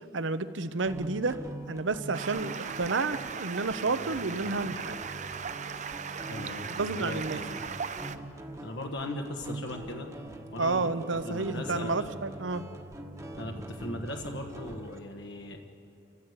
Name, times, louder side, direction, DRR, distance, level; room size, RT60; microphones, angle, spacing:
voice 1, 0.1-1.4 1.7-5.0 6.7-7.4 10.6-12.6, right 3 dB, 75° right, 12 dB, 0.8 m, -30 dB
sound 1, 0.9-15.0, right 1 dB, 15° right, 1.3 m, -43 dB
Stream, 2.1-8.2, right 6 dB, 40° right, 0.6 m, -38 dB
voice 2, 6.3-6.7 7.0-7.6 8.6-10.1 10.5-10.9 11.2-12.1 13.4-15.6, left 1 dB, 70° left, 2 dB, 1.3 m, -38 dB
29.0 x 15.0 x 8.0 m, 2.7 s
head